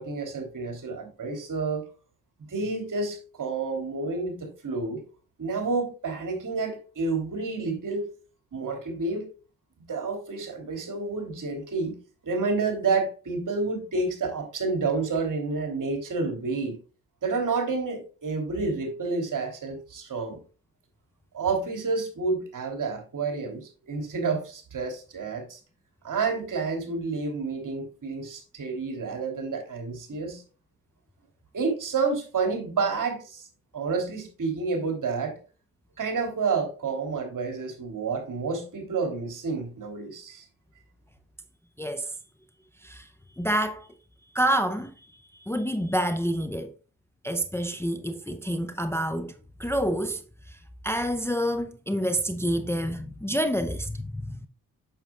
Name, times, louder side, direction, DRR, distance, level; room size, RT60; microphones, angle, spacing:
voice 1, 0.0-1.8 2.5-5.0 5.4-8.1 8.5-9.3 9.8-12.0 12.2-16.8 17.2-20.4 21.3-25.6 26.0-30.4 31.5-33.4 33.7-35.4 36.0-40.4, right 4 dB, 55° right, 3.1 m, -29 dB
voice 2, 41.8-42.1 42.8-43.1 43.4-43.9 44.3-44.9 45.3-46.7 47.2-49.3 49.6-50.2 50.5-50.6 50.8-54.5, equal, 5° left, 0.7 m, -28 dB
9.1 x 7.0 x 2.4 m
hypercardioid pair, 45°, 38 cm